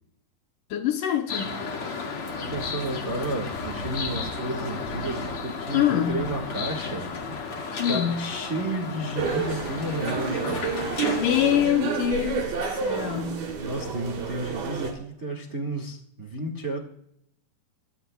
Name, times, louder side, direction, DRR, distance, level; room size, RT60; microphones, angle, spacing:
voice 1, 0.7-1.6 5.7-6.2 7.8-8.2 11.0-13.5, left 10 dB, 70° left, 2.2 m, -25 dB
sound 1, 1.3-11.7, left 4 dB, 45° left, 2.4 m, -33 dB
voice 2, 2.4-7.1 7.9-10.6 13.6-16.8, right 1 dB, 45° right, 0.9 m, -32 dB
sound 2, 9.2-14.9, right 5 dB, 65° right, 4.4 m, -30 dB
23.0 x 18.5 x 2.3 m
omnidirectional pair, 4.3 m